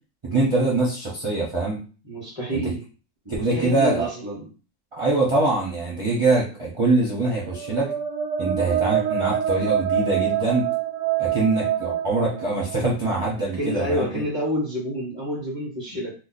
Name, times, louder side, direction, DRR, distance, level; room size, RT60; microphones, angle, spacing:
voice 1, 0.2-1.8 2.5-2.7 3.4-4.1 4.9-8.0 8.4-10.7 11.2-14.2, right 2 dB, 30° right, -5 dB, 0.6 m, -23 dB
voice 2, 2.0-2.8 3.4-4.5 13.5-16.1, equal, 20° left, -4 dB, 0.9 m, -28 dB
sound 1, 7.5-13.3, right 10 dB, 65° right, 0.8 m, -26 dB
2.6 x 2.2 x 4.0 m, 0.37 s
omnidirectional pair, 1.6 m